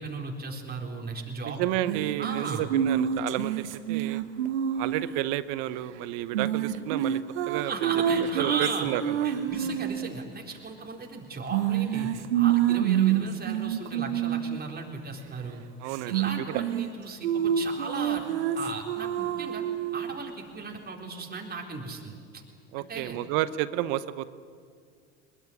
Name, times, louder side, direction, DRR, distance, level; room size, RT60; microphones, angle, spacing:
voice 1, 0.0-1.6 2.2-2.6 7.7-8.9 9.2-12.1 12.3-15.6 16.0-18.2 18.5-19.6 19.9-22.4 22.8-23.2, right 4 dB, 30° right, 1 dB, 4.2 m, -36 dB
voice 2, 1.4-4.2 4.8-7.2 7.5-7.9 8.4-9.0 15.8-16.2 22.7-24.3, right 14 dB, 70° right, 15 dB, 1.0 m, -31 dB
sound 1, 1.9-5.2 6.3-10.1 11.5-14.6 15.9-16.9 17.2-20.1, right 10 dB, 85° right, 1.2 m, -27 dB
21.5 x 21.0 x 9.9 m, 2.1 s
hypercardioid pair, 75°, 33 cm